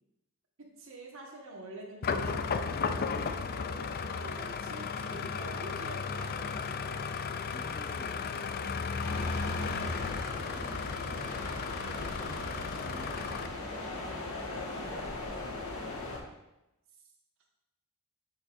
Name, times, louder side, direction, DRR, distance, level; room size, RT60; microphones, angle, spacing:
voice 1, 0.8-6.9 11.8-12.0, right 2 dB, 65° right, -1 dB, 1.5 m, -46 dB
sound 1, 2.0-13.5, left 5 dB, 45° left, 0.4 m, -35 dB
voice 2, 7.5-8.5 9.1-11.5 12.0-16.3, equal, 20° left, 2 dB, 0.7 m, -51 dB
sound 2, 9.0-16.2, left 2 dB, 70° left, 1.7 m, -39 dB
8.4 x 7.6 x 2.6 m, 0.92 s
head